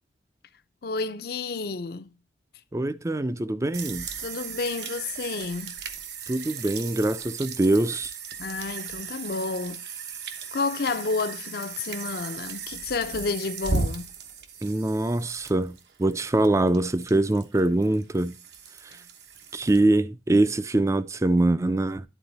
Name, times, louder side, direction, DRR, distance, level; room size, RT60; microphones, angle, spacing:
voice 1, 0.8-2.1 4.2-5.8 8.4-9.8 10.5-14.1, left 4 dB, 60° left, 0.6 m, -30 dB
voice 2, 2.7-4.1 6.3-8.1 14.6-18.4 19.5-22.0, right 2 dB, 15° right, 0.4 m, -23 dB
sound 1, 3.7-19.8, right 4 dB, 70° right, 1.1 m, -36 dB
11.0 x 3.9 x 4.0 m
head